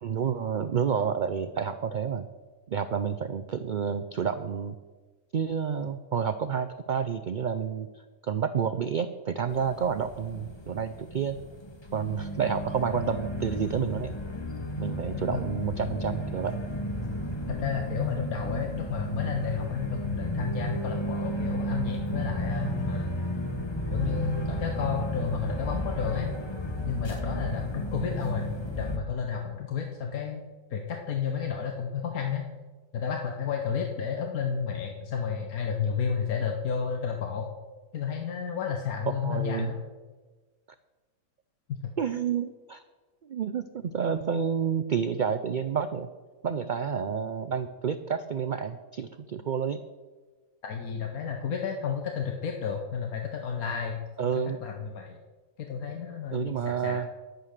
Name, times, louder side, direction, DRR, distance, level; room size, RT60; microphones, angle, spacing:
voice 1, 0.0-2.3 2.7-4.7 5.3-7.9 8.2-11.4 11.9-14.1 14.8-16.6 39.2-39.7 42.0-42.8 43.3-46.1 46.4-49.8 54.2-54.6 56.3-57.1, right 7 dB, 80° right, 10 dB, 0.4 m, -29 dB
sound 1, 9.5-29.0, equal, 20° left, 1.1 m, -33 dB
voice 2, 15.0-15.4 17.5-23.1 23.9-26.3 26.8-30.4 30.7-32.4 32.9-37.5 37.9-39.8 41.7-41.9 50.6-55.2 55.6-57.0, left 7 dB, 80° left, 3 dB, 1.5 m, -32 dB
11.0 x 9.1 x 6.5 m, 1.3 s
omnidirectional pair, 1.5 m